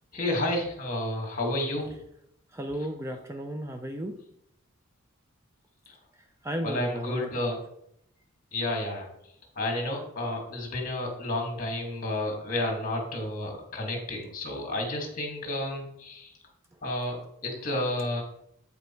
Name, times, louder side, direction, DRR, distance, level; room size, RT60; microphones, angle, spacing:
voice 1, 0.1-1.9 6.6-7.6 8.5-9.1 9.6-16.3 16.8-18.2, left 1 dB, 40° left, 2 dB, 2.1 m, -31 dB
voice 2, 2.5-4.2 6.4-7.5, right 1 dB, 15° right, 4 dB, 0.5 m, -34 dB
8.2 x 5.3 x 4.5 m, 0.76 s
head